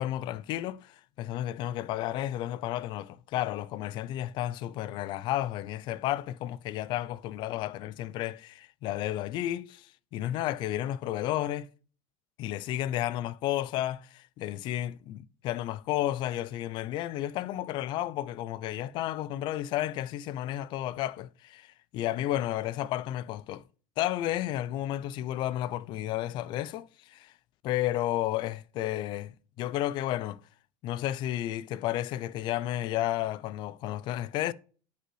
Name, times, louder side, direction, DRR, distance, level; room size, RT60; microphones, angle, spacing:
voice 1, 0.0-11.7 12.4-23.6 24.0-27.3 27.6-30.4 30.8-34.5, left 13 dB, 45° left, 0.4 m, -32 dB
9.8 x 5.6 x 3.1 m
supercardioid pair, 135°, 11 cm